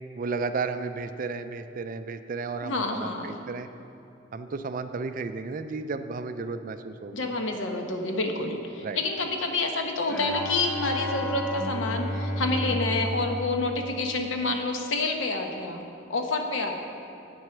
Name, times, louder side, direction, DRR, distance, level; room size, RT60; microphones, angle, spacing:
voice 1, 0.1-3.7 4.3-7.3 8.8-9.0, right 4 dB, 45° right, 10 dB, 0.4 m, -33 dB
voice 2, 2.6-3.3 7.1-15.8 16.1-16.8, left 2 dB, 80° left, 4 dB, 1.0 m, -28 dB
Bowed string instrument, 10.1-14.5, left 1 dB, 5° left, 0.9 m, -32 dB
8.4 x 7.8 x 5.9 m, 2.8 s
head